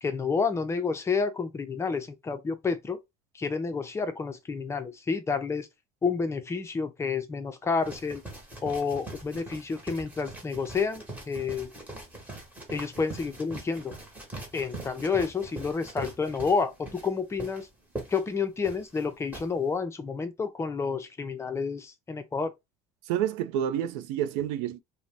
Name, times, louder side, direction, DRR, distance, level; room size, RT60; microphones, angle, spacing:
voice 1, 0.0-3.0 3.3-5.7 6.0-8.2 8.6-11.7 12.7-13.9 14.5-17.7 18.1-22.5, left 5 dB, 15° left, 0.5 m, -30 dB
sound 1, 7.8-19.5, right 2 dB, 10° right, 1.0 m, -42 dB
voice 2, 23.1-24.8, right 10 dB, 90° right, 0.4 m, -29 dB
2.6 x 2.1 x 3.2 m
cardioid pair, 130°, 16 cm